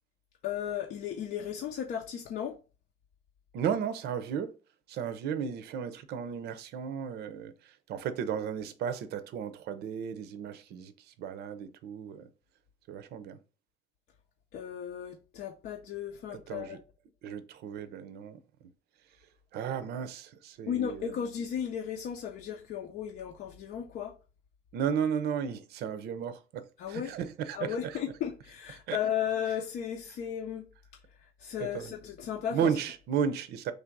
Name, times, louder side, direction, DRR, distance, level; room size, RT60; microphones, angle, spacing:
voice 1, 0.4-2.6 14.5-16.8 20.7-24.1 26.8-27.2 27.5-30.7 31.1-32.8, left 9 dB, 65° left, 0.6 m, -35 dB
voice 2, 3.5-4.6 4.9-12.3 12.9-13.4 16.3-16.8 17.2-18.4 19.5-21.2 24.7-28.0 28.9-29.0 31.6-31.9 32.5-33.7, right 7 dB, 75° right, 0.6 m, -34 dB
3.3 x 2.6 x 4.5 m
cardioid pair, 110°, 17 cm